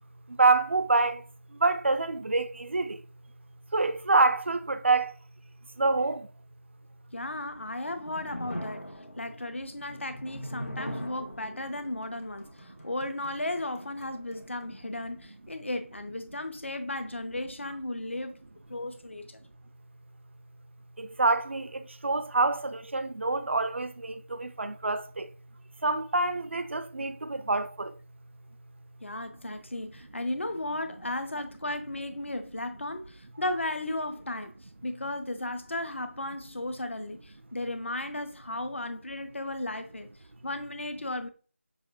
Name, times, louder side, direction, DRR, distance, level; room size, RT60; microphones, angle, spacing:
voice 1, 0.4-1.2 1.6-3.0 3.7-5.1 5.8-6.3 21.0-25.3 25.8-27.9, right 3 dB, 60° right, 0.4 m, -26 dB
voice 2, 7.1-8.8 9.2-12.5 12.8-18.4 18.7-19.4 29.0-34.5 34.8-40.1 40.4-41.3, left 1 dB, 60° left, 0.7 m, -35 dB
sound 1, 7.6-14.7, equal, 90° left, 1.4 m, -42 dB
6.5 x 2.4 x 2.5 m
figure-of-eight pair, 165°, 7 cm